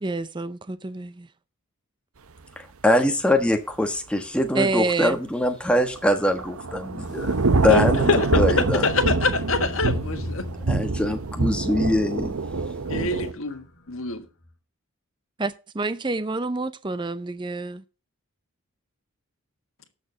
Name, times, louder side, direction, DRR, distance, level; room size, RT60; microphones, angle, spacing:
voice 1, 0.0-1.3 4.5-5.2 15.4-17.8, right 3 dB, 20° right, 0.5 m, -28 dB
voice 2, 2.6-7.3 7.6-8.1 8.3-8.8 10.7-12.3, left 1 dB, 5° left, 1.3 m, -23 dB
Thunder / Rain, 5.9-13.3, right 3 dB, 75° right, 0.8 m, -25 dB
sound 1, 7.0-14.5, left 1 dB, 50° left, 2.1 m, -39 dB
voice 3, 7.6-10.4 12.9-14.2, left 3 dB, 65° left, 1.5 m, -25 dB
18.5 x 6.6 x 2.8 m
head